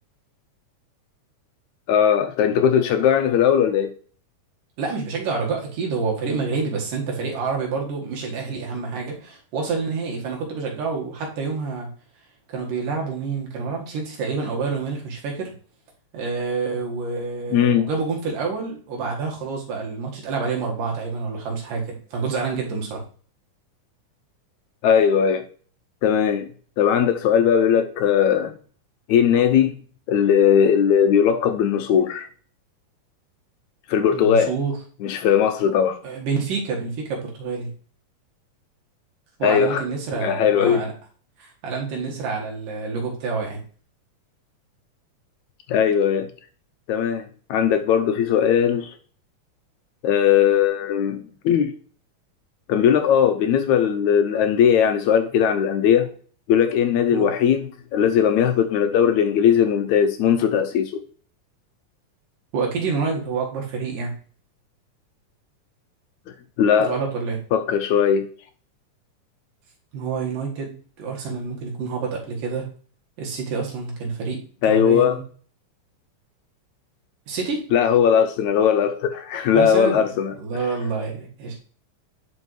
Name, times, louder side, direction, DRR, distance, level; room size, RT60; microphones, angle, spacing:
voice 1, 1.9-3.9 17.5-17.9 24.8-25.5 26.0-26.5 26.8-28.5 29.1-29.8 30.1-32.3 33.9-34.6 35.0-36.0 39.4-39.8 40.2-40.8 45.7-46.3 46.9-48.9 50.0-51.2 51.5-51.7 52.7-56.1 56.5-57.7 57.9-61.0 66.6-66.9 67.5-68.3 74.6-75.2 77.7-80.3, left 8 dB, 75° left, 1.8 m, -19 dB
voice 2, 4.8-11.9 12.5-15.5 16.1-23.0 34.1-34.8 36.0-37.7 39.4-40.9 41.4-43.6 57.1-57.3 62.5-64.1 66.8-67.4 69.9-72.7 73.2-74.4 74.7-75.2 77.3-77.6 79.5-80.0 80.4-81.6, right 4 dB, 85° right, 3.4 m, -28 dB
10.5 x 5.3 x 3.2 m
omnidirectional pair, 3.7 m